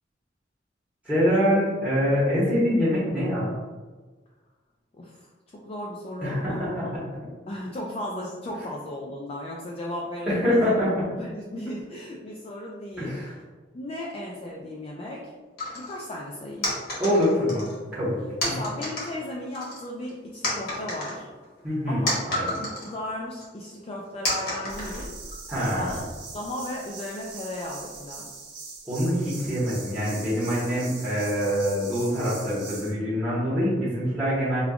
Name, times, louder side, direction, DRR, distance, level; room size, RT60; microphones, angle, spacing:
voice 1, 1.0-3.5 6.2-6.9 10.3-11.0 13.0-13.3 17.0-18.2 18.5-18.6 21.6-22.5 25.5-26.0 28.9-34.6, equal, 10° right, -11 dB, 1.1 m, -25 dB
voice 2, 4.9-5.3 5.6-6.9 7.5-10.7 11.2-13.2 13.7-15.3 15.7-16.7 18.4-21.3 21.9-22.2 22.6-25.1 25.7-26.0 26.3-28.3, left 1 dB, 30° left, -3 dB, 0.4 m, -35 dB
sound 1, 15.6-16.0 16.6-17.8 18.4-19.2 19.5-20.1 20.4-23.0 23.4-23.5 24.2-25.4, left 1 dB, 60° left, 1.2 m, -30 dB
sound 2, 24.7-32.9, right 4 dB, 90° right, 1.2 m, -41 dB
5.1 x 2.4 x 2.3 m, 1.3 s
head